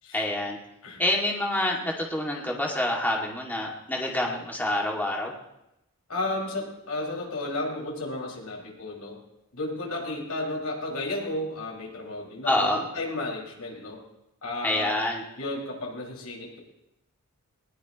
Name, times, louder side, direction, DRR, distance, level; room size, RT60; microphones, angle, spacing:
voice 1, 0.1-0.6 1.0-5.3 12.5-12.8 14.6-15.2, left 1 dB, 10° left, -2 dB, 2.5 m, -27 dB
voice 2, 6.1-9.2 9.5-14.0 14.4-15.0 15.4-16.6, left 2 dB, 85° left, -1 dB, 5.9 m, -33 dB
22.0 x 20.5 x 3.2 m, 0.89 s
head